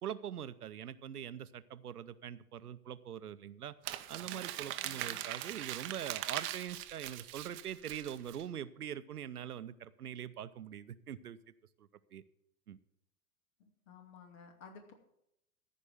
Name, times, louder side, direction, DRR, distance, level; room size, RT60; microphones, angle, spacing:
voice 1, 0.0-3.7 4.1-11.4 11.8-12.2 12.7-12.8, right 9 dB, 75° right, 15 dB, 0.7 m, -43 dB
Crumpling crinkling, 3.8-8.4, right 14 dB, 25° right, 0.7 m, -41 dB
voice 2, 4.8-5.2 13.6-14.9, left 5 dB, 60° left, 5 dB, 2.5 m, -55 dB
14.0 x 5.4 x 7.9 m, 0.80 s
figure-of-eight pair, 95°, 46 cm